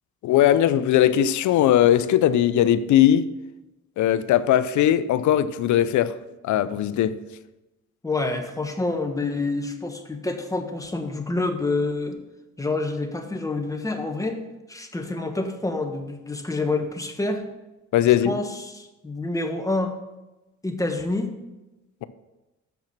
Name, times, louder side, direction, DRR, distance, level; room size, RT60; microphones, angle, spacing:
voice 1, 0.2-3.3 4.0-6.1 6.4-7.2 17.9-18.4, left 11 dB, 75° left, 0.6 m, -19 dB
voice 2, 8.0-12.2 12.6-14.4 14.7-17.4 18.2-19.9 20.6-21.3, left 2 dB, 10° left, 1.2 m, -27 dB
7.3 x 5.9 x 5.9 m
cardioid pair, 90°, 30 cm